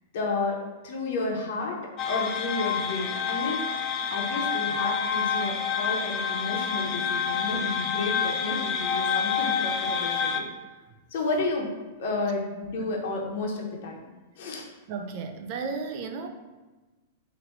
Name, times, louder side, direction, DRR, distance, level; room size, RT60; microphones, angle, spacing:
voice 1, 0.1-3.7 4.1-10.5 11.1-11.7 12.0-14.0 14.4-14.7, left 3 dB, 60° left, -1 dB, 0.7 m, -31 dB
sound 1, 2.0-10.4, left 6 dB, 30° left, 0.3 m, -28 dB
voice 2, 14.9-16.3, right 5 dB, 45° right, 6 dB, 0.4 m, -34 dB
3.0 x 2.6 x 4.3 m, 1.2 s
hypercardioid pair, 145°, 0 cm